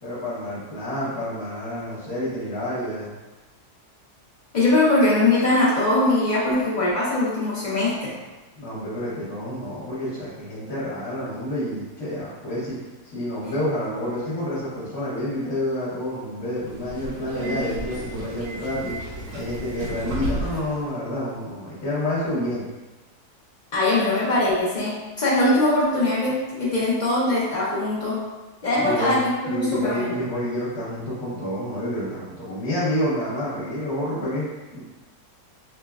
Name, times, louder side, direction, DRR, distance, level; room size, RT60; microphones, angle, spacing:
voice 1, 0.0-3.1 8.6-12.7 13.1-19.0 19.3-22.6 28.8-29.2 29.4-34.5 34.7-34.8, left 1 dB, 50° left, -10 dB, 1.1 m, -28 dB
voice 2, 4.5-8.1 23.7-28.2 28.6-30.2, left 2 dB, 80° left, -8 dB, 0.4 m, -21 dB
Subway metro underground, 16.6-20.8, right 1 dB, 90° right, 1.4 m, -33 dB
4.9 x 2.1 x 2.3 m, 1.2 s
omnidirectional pair, 1.7 m